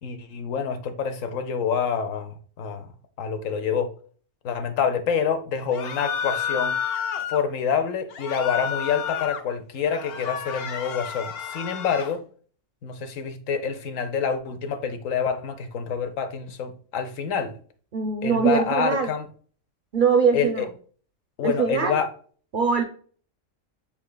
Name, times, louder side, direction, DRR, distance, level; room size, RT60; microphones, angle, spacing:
voice 1, 0.0-2.9 3.2-3.9 4.4-6.7 7.3-12.2 12.8-17.5 18.2-19.3 20.3-20.7 21.4-22.1, left 6 dB, 80° left, 1.1 m, -27 dB
sound 1, 5.7-7.4 8.1-9.4 9.8-12.2, left 8 dB, 60° left, 0.7 m, -30 dB
voice 2, 17.9-19.1 19.9-20.7 21.4-22.0 22.5-22.8, right 5 dB, 55° right, 0.6 m, -22 dB
5.8 x 3.7 x 2.2 m
omnidirectional pair, 1.4 m